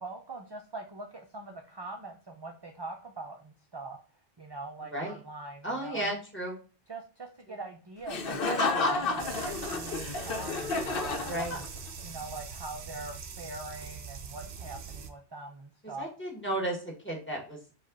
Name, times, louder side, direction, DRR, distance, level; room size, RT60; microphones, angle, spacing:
voice 1, 0.0-4.0 4.4-6.1 6.9-11.7 12.0-16.1, right 2 dB, 35° right, 3 dB, 0.4 m, -43 dB
voice 2, 5.6-6.6 7.5-7.6 11.2-11.6 15.8-17.6, right 1 dB, 10° left, -1 dB, 1.3 m, -34 dB
Laughter, 8.1-12.0, left 3 dB, 60° left, 0.9 m, -31 dB
sound 1, 9.2-15.1, right 5 dB, 60° right, 0.8 m, -42 dB
5.2 x 2.4 x 3.8 m, 0.37 s
omnidirectional pair, 1.1 m